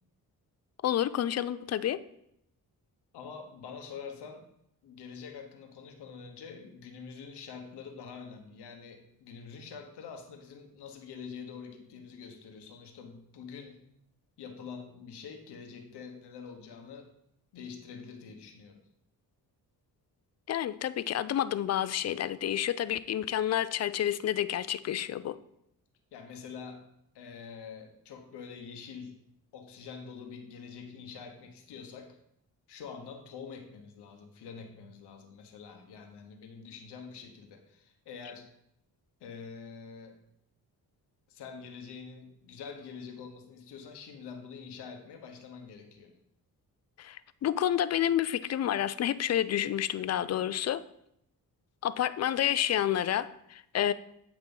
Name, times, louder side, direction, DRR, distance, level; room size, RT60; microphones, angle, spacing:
voice 1, 0.8-2.0 20.5-25.4 47.0-50.8 51.8-53.9, left 11 dB, 45° left, 16 dB, 0.4 m, -29 dB
voice 2, 3.1-4.5 4.8-13.8 14.4-17.1 17.5-18.8 26.1-26.9 27.1-29.2 29.5-32.2 32.7-38.5 39.2-40.2 41.3-46.1, left 6 dB, 85° left, 5 dB, 1.0 m, -46 dB
8.1 x 3.0 x 5.3 m, 0.76 s
cardioid pair, 60°, 39 cm